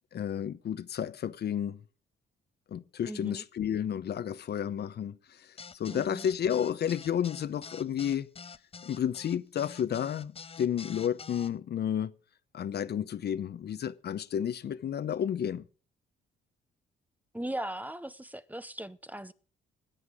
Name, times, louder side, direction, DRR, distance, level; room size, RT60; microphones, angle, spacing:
voice 1, 0.1-1.8 2.7-5.2 5.7-8.3 8.8-12.1 12.5-15.6, left 9 dB, 55° left, 0.8 m, -31 dB
voice 2, 3.0-3.4 5.9-6.3 17.3-19.3, right 1 dB, 10° right, 0.7 m, -38 dB
sound 1, 5.6-11.5, left 5 dB, 30° left, 0.7 m, -46 dB
21.0 x 8.1 x 5.0 m
cardioid pair, 90°, 20 cm